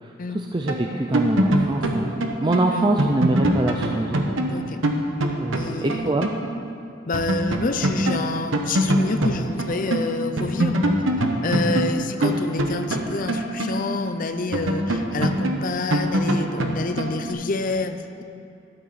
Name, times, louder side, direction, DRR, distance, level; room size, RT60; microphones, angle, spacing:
voice 1, 0.0-4.2 5.4-6.3 11.7-11.9, right 2 dB, 25° right, 2 dB, 0.4 m, -24 dB
sound 1, 0.7-6.4 6.7-6.8 7.1-10.1 10.4-14.1 14.5-17.3, right 1 dB, 80° right, 1.1 m, -23 dB
voice 2, 4.5-4.8 5.5-6.1 7.1-10.8 11.4-18.2, left 3 dB, 45° left, 9 dB, 0.6 m, -28 dB
12.5 x 12.0 x 4.1 m, 2.5 s
head